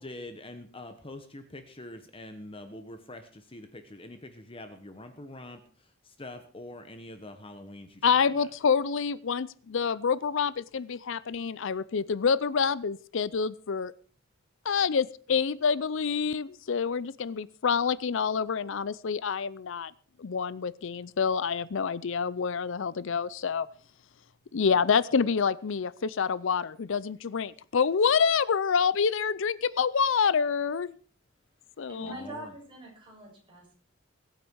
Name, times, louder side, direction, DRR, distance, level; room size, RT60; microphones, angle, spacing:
voice 1, 0.0-8.5 32.0-32.5, left 1 dB, 25° left, 7 dB, 1.2 m, -45 dB
voice 2, 8.0-13.9 14.6-19.9 20.2-23.7 24.5-31.0 31.8-32.1, left 6 dB, 65° left, 19 dB, 0.5 m, -27 dB
voice 3, 31.9-33.7, right 1 dB, 25° right, -3 dB, 7.8 m, -43 dB
21.5 x 9.0 x 4.7 m, 0.42 s
head